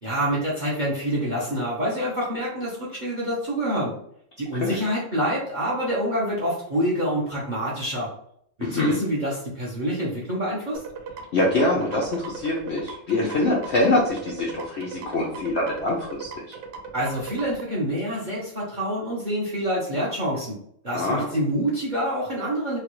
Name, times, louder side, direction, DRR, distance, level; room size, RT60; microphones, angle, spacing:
voice 1, 0.0-3.9 4.4-8.1 8.6-10.8 16.9-20.5 20.8-22.8, equal, 50° right, -5 dB, 0.5 m, -26 dB
voice 2, 8.6-9.0 11.3-16.6 20.9-21.3, left 2 dB, 85° left, -2 dB, 0.6 m, -24 dB
sound 1, 10.7-17.6, right 5 dB, 75° right, 1.0 m, -38 dB
3.3 x 2.2 x 3.0 m, 0.69 s
omnidirectional pair, 1.8 m